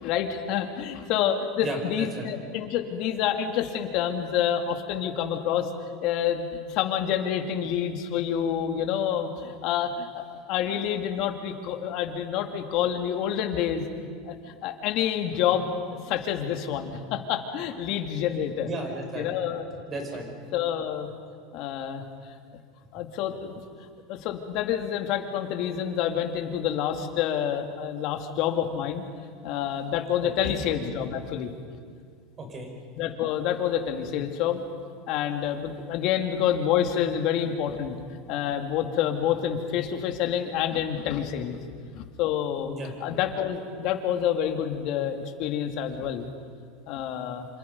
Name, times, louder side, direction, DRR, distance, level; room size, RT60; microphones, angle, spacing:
voice 1, 0.0-5.7 6.0-13.8 14.3-14.4 14.6-18.7 19.2-19.7 20.5-21.1 21.5-22.0 22.9-23.5 24.1-29.0 29.4-31.5 33.0-34.6 35.1-37.9 38.3-41.6 41.9-42.7 43.0-46.3 46.9-47.5, left 9 dB, 55° left, 5 dB, 2.6 m, -28 dB
voice 2, 1.6-2.2 18.6-19.3 19.9-20.3 30.2-30.6 32.4-32.7 42.7-42.9, right 2 dB, 25° right, 3 dB, 5.6 m, -34 dB
27.5 x 26.5 x 5.5 m, 2.1 s
supercardioid pair, 140°, 0 cm